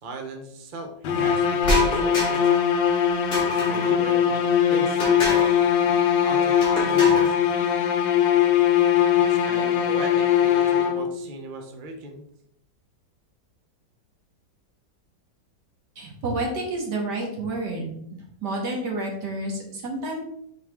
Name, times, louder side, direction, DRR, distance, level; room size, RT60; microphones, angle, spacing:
voice 1, 0.0-2.5 3.4-5.5 6.2-6.6 6.9-7.4 9.2-12.3, right 3 dB, 45° right, 3 dB, 0.6 m, -38 dB
sound 1, 1.0-11.3, left 9 dB, 75° left, 1.3 m, -21 dB
sound 2, 1.6-2.6 3.3-3.9 5.0-5.6 6.6-7.3, equal, 40° left, 2.4 m, -27 dB
voice 2, 16.0-17.9 18.4-20.2, right 2 dB, 65° right, -1 dB, 2.1 m, -29 dB
6.9 x 4.3 x 3.5 m, 0.72 s
omnidirectional pair, 2.0 m